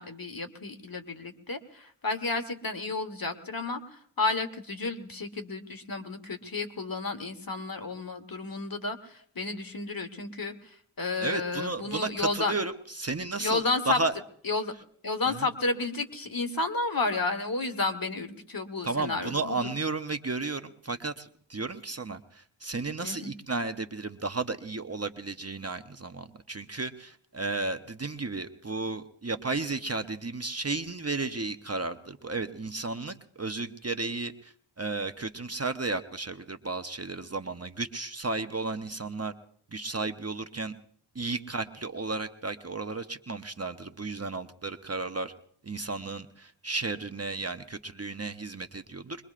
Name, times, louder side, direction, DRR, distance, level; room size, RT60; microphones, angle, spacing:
voice 1, 0.0-12.5 13.4-14.0 14.4-14.7 15.0-19.7 23.0-23.3, left 3 dB, 50° left, 7 dB, 1.4 m, -32 dB
voice 2, 11.2-14.2 14.7-14.8 15.3-15.5 18.8-39.3 39.7-40.7 41.1-45.3 45.6-49.2, right 3 dB, 35° right, 8 dB, 0.7 m, -33 dB
23.0 x 22.0 x 2.5 m, 0.63 s
wide cardioid pair, 65°, 46 cm